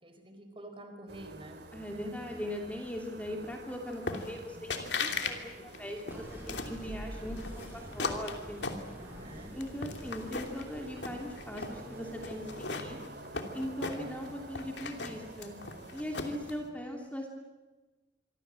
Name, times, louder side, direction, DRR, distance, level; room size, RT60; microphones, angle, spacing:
voice 1, 0.0-1.6 9.0-9.5 13.8-14.1, right 1 dB, 30° right, 6 dB, 4.7 m, -48 dB
sound 1, 1.1-16.6, right 2 dB, 60° right, 3.1 m, -49 dB
voice 2, 1.7-5.5 5.8-8.6 9.5-13.0 13.5-15.5 15.9-17.3, equal, 10° left, 1 dB, 2.8 m, -40 dB
sound 2, 4.1-4.4 4.7-5.4 5.7-6.8 7.4-9.2 9.6-10.6 11.0-11.8 12.2-14.3 14.5-16.5, left 4 dB, 65° left, 2.9 m, -37 dB
sound 3, 6.1-13.0, equal, 10° right, 7.1 m, -47 dB
26.5 x 24.0 x 7.7 m, 1.2 s
head